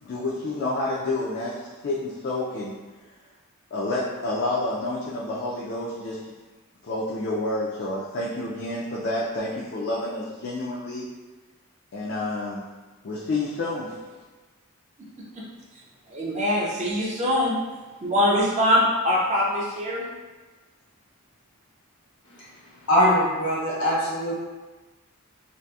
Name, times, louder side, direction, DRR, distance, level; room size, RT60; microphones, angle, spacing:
voice 1, 0.0-2.8 3.7-6.3 6.8-11.0 11.9-12.7 13.0-14.0, left 2 dB, 50° left, -6 dB, 0.3 m, -29 dB
voice 2, 16.1-17.6 18.0-20.1, left 1 dB, 30° right, -4 dB, 0.4 m, -23 dB
voice 3, 22.9-24.3, equal, 75° left, -7 dB, 1.0 m, -21 dB
2.7 x 2.4 x 2.3 m, 1.2 s
head